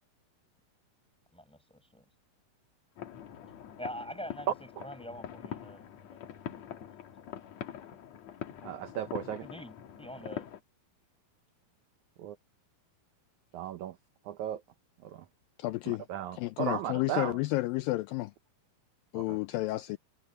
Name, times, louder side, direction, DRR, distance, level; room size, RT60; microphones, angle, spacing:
voice 1, 1.3-2.0 3.8-4.5 4.8-6.2 6.6-6.9 9.4-9.7 10.0-10.5, equal, ahead, 5.3 m, -44 dB
sound 1, 3.0-10.6, left 10 dB, 60° left, 2.2 m, -44 dB
voice 2, 8.6-9.4 12.2-12.4 13.5-14.0 14.2-14.6 15.0-15.3 15.9-17.4 19.2-19.4, right 10 dB, 75° right, 1.8 m, -36 dB
voice 3, 15.6-16.0 16.4-18.3 19.1-20.0, left 19 dB, 80° left, 2.1 m, -31 dB
omnidirectional pair, 4.4 m